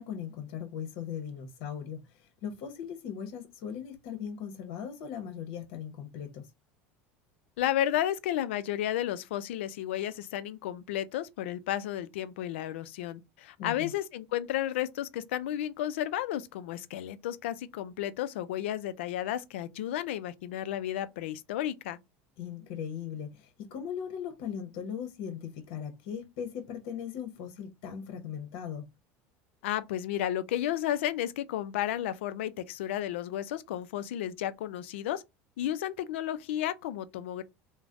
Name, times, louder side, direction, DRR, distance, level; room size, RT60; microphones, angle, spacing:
voice 1, 0.0-6.5 13.6-13.9 22.4-28.9, left 8 dB, 75° left, 0.8 m, -39 dB
voice 2, 7.6-22.0 29.6-35.2 35.6-37.4, left 12 dB, 90° left, 0.3 m, -32 dB
3.2 x 2.1 x 2.4 m
supercardioid pair, 110°, 6 cm